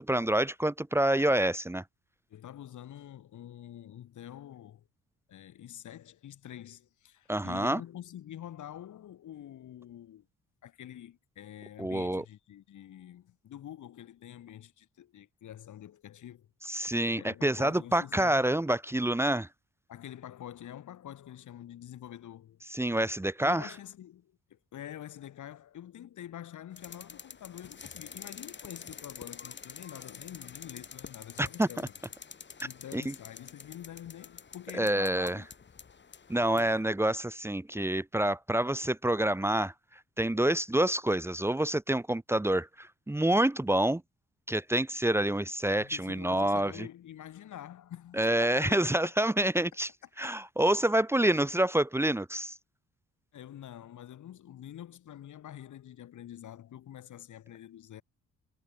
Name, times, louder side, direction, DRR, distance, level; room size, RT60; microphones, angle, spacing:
voice 1, 0.0-1.8 7.3-7.8 11.8-12.2 16.7-19.5 22.7-23.7 31.4-31.7 32.9-33.1 34.7-35.4 36.3-39.7 40.2-44.0 44.5-46.9 48.2-49.9 50.2-52.5, right 1 dB, 10° right, 1.4 m, -27 dB
voice 2, 2.3-4.9 5.3-10.3 10.6-16.5 17.1-18.4 19.9-22.6 23.4-31.9 32.6-35.5 36.5-36.8 45.8-49.1 49.5-49.7 53.3-58.0, left 11 dB, 70° left, 4.0 m, -46 dB
sound 1, 26.8-36.7, left 6 dB, 35° left, 6.9 m, -48 dB
cardioid pair, 140°, 31 cm